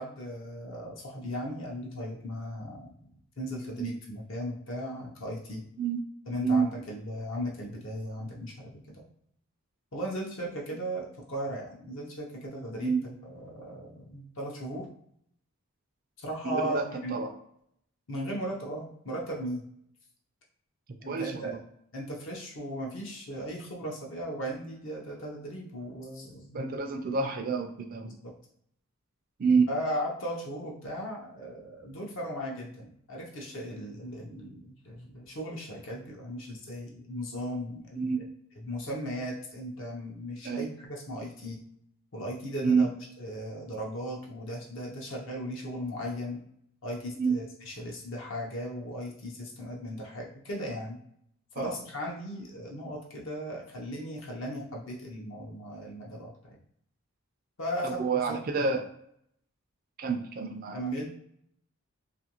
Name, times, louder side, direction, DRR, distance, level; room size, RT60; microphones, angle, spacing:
voice 1, 0.0-5.6 6.3-9.0 9.9-13.0 13.3-14.9 16.2-17.2 18.1-19.6 21.0-21.6 21.9-26.6 28.0-28.3 29.7-38.2 38.6-41.6 42.1-42.9 43.2-46.4 46.8-51.0 51.5-56.6 57.6-58.0 58.3-58.4 60.7-61.1, equal, 60° left, -2 dB, 0.7 m, -37 dB
voice 2, 16.4-16.9 17.1-17.3 21.1-21.6 26.5-28.2 29.4-29.7 38.0-38.2 40.4-40.7 42.6-42.9 47.2-47.4 51.6-51.7 57.8-58.8 60.0-60.8, right 5 dB, 40° right, 4 dB, 0.3 m, -28 dB
2.5 x 2.5 x 2.9 m, 0.71 s
head